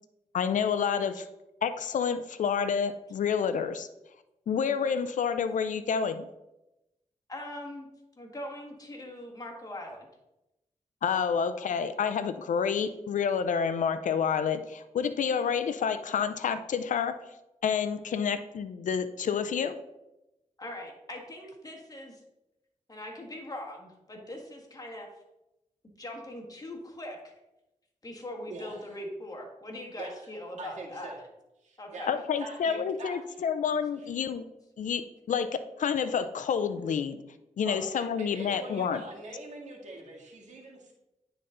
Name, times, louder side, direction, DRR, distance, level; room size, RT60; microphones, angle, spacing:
voice 1, 0.3-1.3 1.6-3.9 4.5-6.3 11.0-17.2 17.6-19.8 32.1-34.4 34.8-37.2 37.6-39.0, left 7 dB, 80° left, 11 dB, 0.5 m, -29 dB
voice 2, 7.3-7.9 8.2-10.1 20.6-22.2 22.9-25.1 26.0-27.3 28.0-31.1 31.8-32.2, left 1 dB, 30° left, 0 dB, 1.7 m, -41 dB
voice 3, 28.5-29.0 30.0-30.1 30.6-31.2 31.6-32.1 32.4-33.4 37.6-40.9, right 2 dB, 65° right, -2 dB, 1.9 m, -43 dB
9.5 x 4.0 x 3.8 m, 0.92 s
cardioid pair, 60°, 13 cm